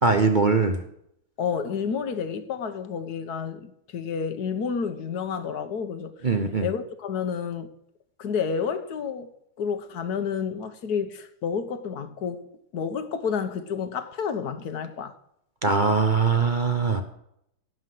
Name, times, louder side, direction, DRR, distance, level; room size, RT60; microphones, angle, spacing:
voice 1, 0.0-0.8 6.2-6.7 15.6-17.0, right 4 dB, 60° right, 0.4 m, -21 dB
voice 2, 1.4-6.3 6.6-7.7 8.2-9.3 9.6-12.4 12.7-15.1, left 6 dB, 55° left, 1.4 m, -30 dB
17.5 x 5.9 x 7.7 m
omnidirectional pair, 2.3 m